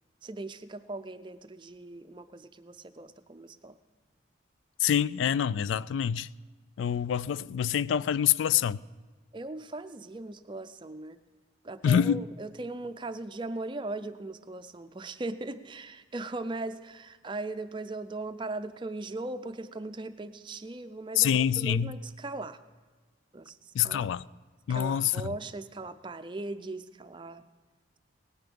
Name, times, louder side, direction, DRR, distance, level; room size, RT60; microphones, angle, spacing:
voice 1, 0.2-3.7 9.3-11.2 11.6-22.6 23.3-24.1 24.7-27.4, right 2 dB, 25° right, 0.4 m, -39 dB
voice 2, 4.8-6.3 6.8-8.8 11.8-12.2 21.2-22.0 23.7-24.2 24.7-25.3, left 9 dB, 80° left, 0.3 m, -26 dB
18.0 x 9.3 x 5.3 m
head